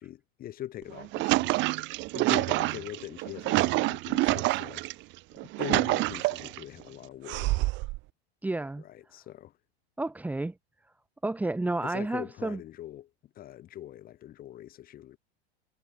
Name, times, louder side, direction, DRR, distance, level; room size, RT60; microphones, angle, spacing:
voice 1, 0.0-1.6 2.1-4.8 5.4-7.7 8.8-9.5 11.8-15.2, left 12 dB, 25° left, 6.6 m, -42 dB
sound 1, 0.8-4.9 5.4-6.6 7.3-8.0, right 21 dB, 35° right, 2.1 m, -27 dB
voice 2, 8.4-8.8 10.0-10.5 11.2-12.6, right 2 dB, 5° right, 4.3 m, -31 dB
supercardioid pair, 155°, 32 cm